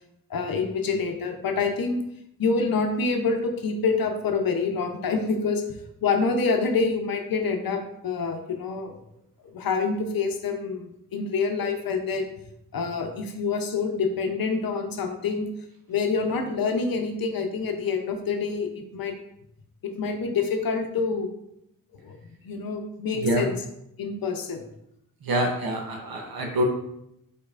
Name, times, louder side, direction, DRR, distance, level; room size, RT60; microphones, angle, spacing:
voice 1, 0.3-2.0 2.4-8.9 9.5-12.3 12.7-15.5 15.9-19.1 19.8-21.3 22.0-22.2 22.4-23.6 24.0-24.6, left 4 dB, 80° left, 4 dB, 0.7 m, -27 dB
voice 2, 25.3-26.6, right 1 dB, 85° right, 1 dB, 0.8 m, -25 dB
5.2 x 4.1 x 2.4 m, 0.80 s
cardioid pair, 60°, 35 cm